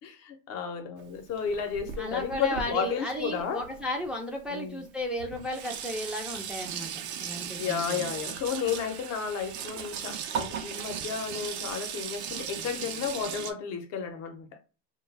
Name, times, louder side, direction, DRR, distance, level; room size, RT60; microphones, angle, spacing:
voice 1, 0.0-3.6 4.5-4.8 7.6-14.5, left 7 dB, 50° left, 0.7 m, -32 dB
Sink (filling or washing), 1.0-4.1 4.9-5.0 5.2-13.5, right 8 dB, 90° right, 0.6 m, -37 dB
voice 2, 2.0-8.1, equal, 5° right, 0.4 m, -34 dB
2.3 x 2.2 x 3.2 m
supercardioid pair, 105°, 32 cm